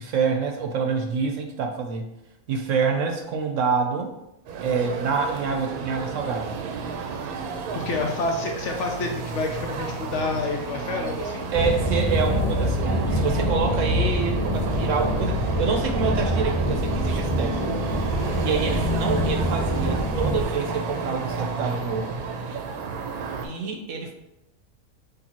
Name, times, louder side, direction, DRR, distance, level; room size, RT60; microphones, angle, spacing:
voice 1, 0.0-2.1 2.5-4.1 4.6-6.6 11.5-17.6 18.4-22.2 23.4-24.1, right 5 dB, 65° right, 3 dB, 0.9 m, -27 dB
sound 1, 4.5-23.5, right 4 dB, 85° right, 1.1 m, -32 dB
voice 2, 7.7-11.5 18.0-18.6, left 3 dB, 65° left, 2 dB, 0.8 m, -29 dB
sound 2, 11.5-20.4, equal, 35° right, 0.5 m, -25 dB
6.6 x 2.7 x 2.9 m, 0.89 s
omnidirectional pair, 1.6 m